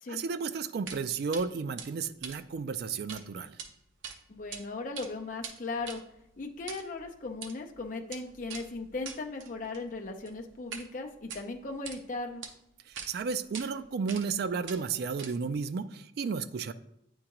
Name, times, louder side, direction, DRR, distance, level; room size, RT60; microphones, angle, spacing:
voice 1, 0.1-3.6 12.9-16.7, right 5 dB, 55° right, 12 dB, 0.3 m, -33 dB
sound 1, 0.9-1.0 1.3-1.4 1.8-3.2 3.5-3.7 4.0-4.6 4.9-10.9 11.2-12.0 12.4-12.5 12.9-13.1 13.5-13.7 14.1-14.4 14.6-15.6, right 6 dB, 85° right, 0.7 m, -44 dB
voice 2, 4.3-6.0 6.4-12.5, left 3 dB, 45° left, 2 dB, 0.5 m, -38 dB
8.8 x 3.6 x 3.0 m, 0.78 s
head